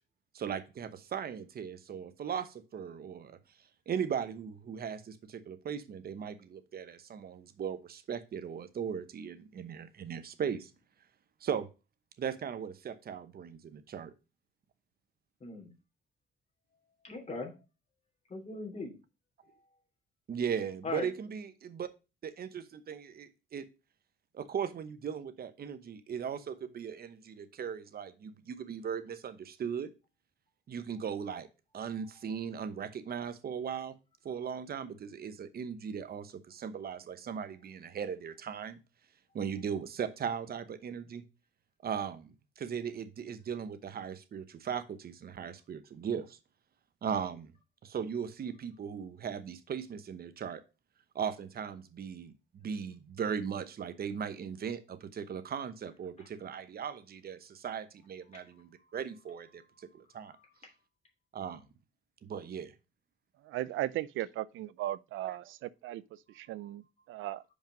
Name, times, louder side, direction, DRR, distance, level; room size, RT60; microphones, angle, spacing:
voice 1, 0.3-3.4 3.9-10.7 11.4-11.7 12.2-14.1 20.3-21.9 22.2-23.7 24.3-29.9 30.7-31.5 31.7-34.0 34.2-38.8 39.3-41.2 41.8-42.3 42.6-46.4 47.0-47.5 47.8-50.6 51.1-60.4 61.3-61.6 62.2-62.7 65.3-65.4, right 7 dB, 50° right, 0.9 m, -38 dB
voice 2, 15.4-15.7 17.0-17.5 18.3-18.9 20.8-21.1 58.3-58.4 58.8-59.0 59.7-60.5 66.3-66.4, left 3 dB, 35° left, 2.9 m, -41 dB
voice 3, 63.4-67.4, right 14 dB, 80° right, 0.5 m, -37 dB
5.2 x 5.2 x 6.0 m
cardioid pair, 90°, 20 cm